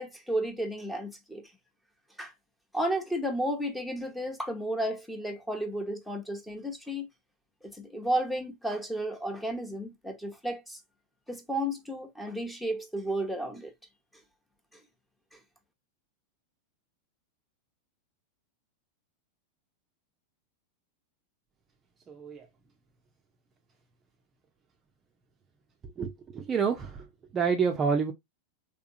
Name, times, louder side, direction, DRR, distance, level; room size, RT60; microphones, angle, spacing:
voice 1, 0.0-1.4 2.2-2.3 2.7-7.1 7.6-10.8 11.3-13.7, right 1 dB, 5° left, 0.9 m, -33 dB
voice 2, 22.1-22.5 25.8-27.1 27.3-28.1, right 6 dB, 25° right, 0.5 m, -28 dB
3.6 x 3.0 x 2.4 m
figure-of-eight pair, 90°, 0 cm